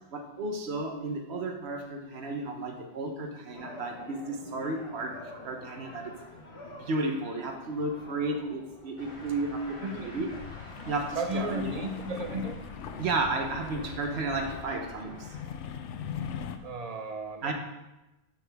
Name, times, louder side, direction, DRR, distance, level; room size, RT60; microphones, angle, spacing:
voice 1, 0.1-5.1 5.4-6.1 6.8-10.3 10.9-11.7 13.0-15.2 17.4-17.5, right 2 dB, 65° right, 4 dB, 1.2 m, -33 dB
sound 1, 3.5-10.2, left 2 dB, 60° left, 1.4 m, -48 dB
sound 2, 9.0-15.4, left 1 dB, 25° left, 1.2 m, -49 dB
sound 3, 10.3-16.6, left 7 dB, 80° left, 0.9 m, -40 dB
voice 2, 11.2-12.6 16.6-17.5, right 1 dB, 35° right, 6 dB, 0.8 m, -34 dB
11.0 x 5.8 x 3.5 m, 0.99 s
omnidirectional pair, 1.2 m